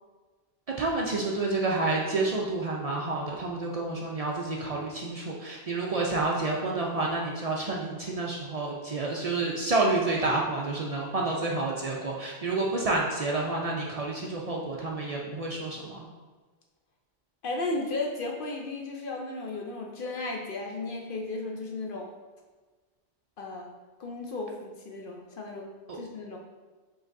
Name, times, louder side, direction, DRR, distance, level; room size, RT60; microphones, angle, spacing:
voice 1, 0.8-16.1 25.9-26.0, right 2 dB, 70° right, -2 dB, 0.3 m, -29 dB
voice 2, 17.4-22.1 23.4-25.7 25.9-26.4, left 2 dB, 60° left, 1 dB, 0.6 m, -35 dB
5.1 x 3.9 x 2.5 m, 1.3 s
omnidirectional pair, 1.3 m